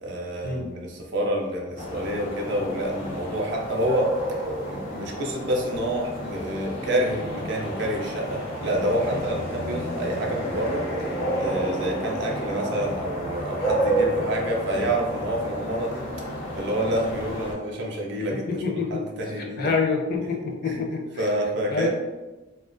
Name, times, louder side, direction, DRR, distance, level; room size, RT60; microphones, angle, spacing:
voice 1, 0.0-4.1 4.6-16.1 16.6-19.7 20.6-20.8 21.2-21.9, right 1 dB, 60° right, 0 dB, 0.5 m, -28 dB
sound 1, 1.8-17.5, right 1 dB, 90° left, 0.8 m, -30 dB
voice 2, 18.3-19.0 19.4-21.3 21.7-21.9, left 4 dB, 50° left, 1 dB, 0.4 m, -27 dB
2.4 x 2.2 x 2.5 m, 1.2 s
head